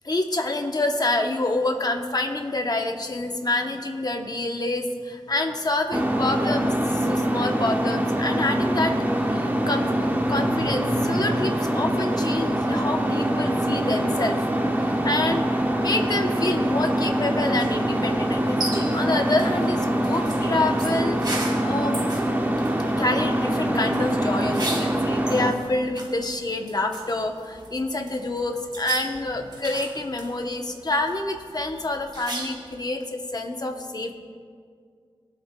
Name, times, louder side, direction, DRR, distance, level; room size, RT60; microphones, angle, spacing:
voice 1, 0.0-9.0 9.2-21.2 21.6-22.2 23.0-34.1, left 2 dB, 40° left, 4 dB, 0.9 m, -27 dB
sound 1, 5.9-25.5, right 1 dB, 20° right, 1.0 m, -24 dB
sound 2, 17.6-32.8, right 1 dB, 45° right, 2.0 m, -38 dB
21.0 x 8.1 x 2.3 m, 2.1 s
wide cardioid pair, 80°, 10 cm